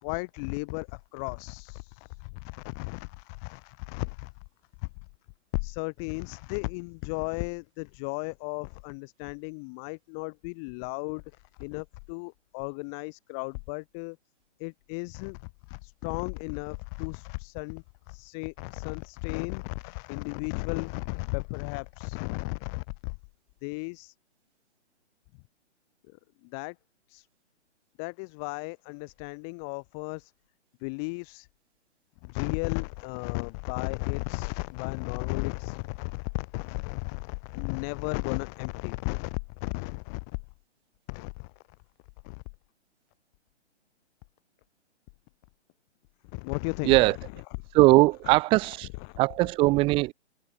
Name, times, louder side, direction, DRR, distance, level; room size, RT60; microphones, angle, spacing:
voice 1, 0.0-4.3 4.8-4.9 5.5-11.2 11.6-14.2 14.6-23.1 23.6-24.1 26.4-26.8 27.1-27.3 28.0-30.3 30.8-31.5 32.2-40.2 41.1-41.5 42.2-42.4 46.3-47.1 48.2-48.4 49.0-49.2, left 35 dB, 5° left, 0.4 m, -35 dB
voice 2, 46.8-47.2 47.7-48.9 49.2-50.1, right 21 dB, 15° right, 0.9 m, -20 dB
hypercardioid pair, 150°, 35 cm